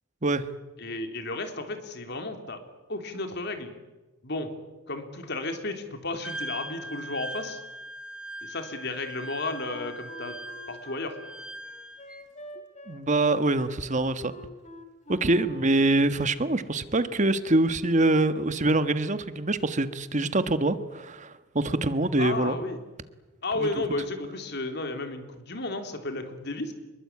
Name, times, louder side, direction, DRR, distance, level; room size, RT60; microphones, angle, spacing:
voice 1, 0.8-2.6 2.9-3.8 4.2-4.5 4.9-7.6 8.4-10.3 10.7-11.2 22.2-22.8 23.4-26.7, left 2 dB, 55° left, 6 dB, 3.7 m, -33 dB
Wind instrument woodwind instrument, 6.2-12.2, right 1 dB, 5° right, 1.1 m, -40 dB
Wind instrument woodwind instrument 2, 9.7-16.0, left 1 dB, 35° left, 3.1 m, -47 dB
voice 2, 12.9-14.3 15.1-22.6 23.6-23.8, right 2 dB, 35° right, 11 dB, 1.4 m, -25 dB
25.5 x 22.5 x 8.6 m, 1.2 s
head